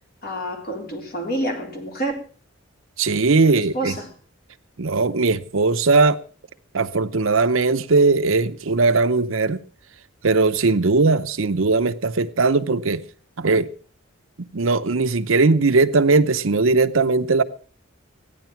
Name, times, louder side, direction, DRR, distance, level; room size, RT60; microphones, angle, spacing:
voice 1, 0.2-2.2 3.6-4.1, right 1 dB, 50° left, 3.3 m, -28 dB
voice 2, 3.0-3.9 4.8-6.2 6.7-9.6 10.2-13.0 13.4-13.7 14.4-17.4, right 3 dB, 75° right, 0.8 m, -19 dB
15.0 x 10.0 x 5.8 m
head